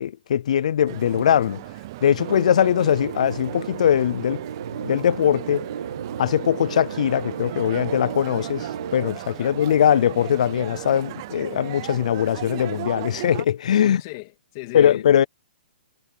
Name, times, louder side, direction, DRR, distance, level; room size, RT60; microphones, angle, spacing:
voice 1, 0.0-1.6 2.0-4.4 4.8-5.7 6.2-14.0 14.7-15.2, left 9 dB, 45° left, 0.4 m, -21 dB
sound 1, 0.9-13.4, right 17 dB, 25° right, 0.6 m, -37 dB
sound 2, 2.2-9.1, right 7 dB, 65° right, 1.7 m, -34 dB
voice 2, 13.8-15.0, left 21 dB, 25° left, 2.5 m, -37 dB
hypercardioid pair, 180°, 5 cm